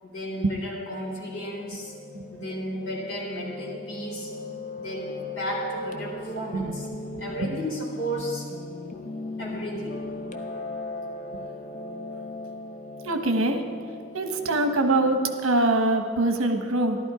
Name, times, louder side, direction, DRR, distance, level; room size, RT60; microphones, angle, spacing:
voice 1, 0.0-1.9 2.3-4.3 4.8-6.9 7.2-8.5 9.4-10.0, equal, 55° left, -4 dB, 3.8 m, -33 dB
Piano, 0.9-15.3, left 2 dB, 35° left, 0.6 m, -38 dB
voice 2, 7.1-7.6 8.2-8.3 13.0-13.6 14.1-17.0, right 2 dB, 75° right, 6 dB, 1.0 m, -24 dB
14.0 x 12.0 x 4.8 m, 2.1 s
head